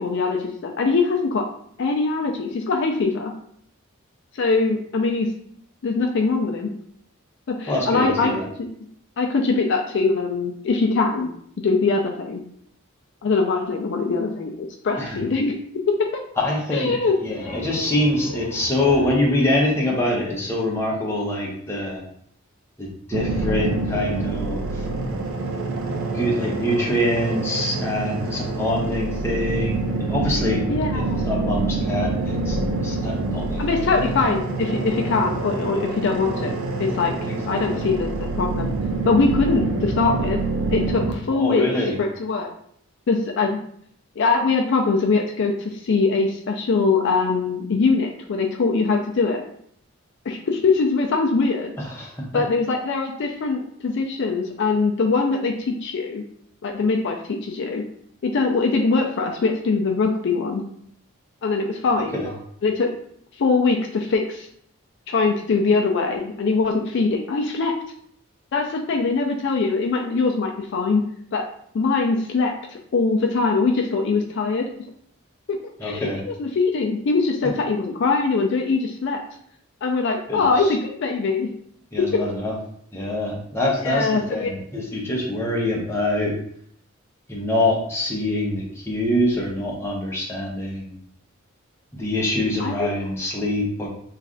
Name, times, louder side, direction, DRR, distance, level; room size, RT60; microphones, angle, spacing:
voice 1, 0.0-1.4 1.8-3.3 4.3-5.3 5.8-6.7 7.5-8.3 9.2-11.3 11.6-12.4 13.2-15.6 16.1-16.2 16.7-17.1 30.7-31.3 33.6-37.2 37.5-38.7 39.1-40.4 40.7-41.7 42.0-42.5 43.1-43.6 44.2-49.5 50.3-51.7 52.3-56.2 56.6-57.8 58.2-60.6 61.4-62.2 62.6-62.9 63.4-64.5 65.1-67.7 68.5-71.0 71.3-71.4 71.7-72.5 72.9-74.7 75.5-79.2 79.8-81.5 82.0-82.2 83.8-84.6 92.6-92.9, left 4 dB, 55° left, 2 dB, 0.4 m, -22 dB
voice 2, 7.7-8.5 15.0-15.2 16.4-22.0 22.8-24.6 26.1-30.6 30.9-33.7 37.3-37.9 41.3-42.0 51.8-52.1 62.1-62.3 75.8-76.2 80.3-80.6 81.9-82.5 82.9-86.3 87.3-90.9 91.9-93.9, left 1 dB, 10° left, -3 dB, 0.7 m, -25 dB
sound 1, 17.1-20.7, left 1 dB, 85° left, 0.7 m, -38 dB
sound 2, 23.1-41.1, right 3 dB, 80° right, 0.5 m, -26 dB
3.2 x 2.4 x 3.7 m, 0.65 s
head